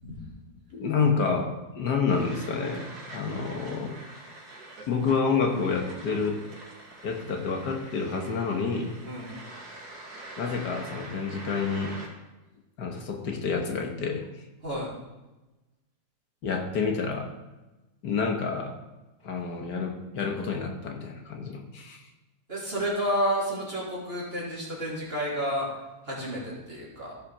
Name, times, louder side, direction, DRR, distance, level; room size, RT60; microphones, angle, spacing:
voice 1, 0.7-4.0 4.9-6.4 7.0-8.9 10.4-12.0 12.8-14.3 16.4-17.3 18.0-18.8 19.2-22.0, left 5 dB, 75° left, 3 dB, 1.9 m, -28 dB
sound 1, 2.1-12.1, right 2 dB, 65° right, 2.9 m, -45 dB
voice 2, 9.1-9.4 14.6-15.0 22.5-25.7 26.0-27.1, equal, 35° right, -6 dB, 3.5 m, -30 dB
15.0 x 5.8 x 5.0 m, 1.1 s
omnidirectional pair, 1.8 m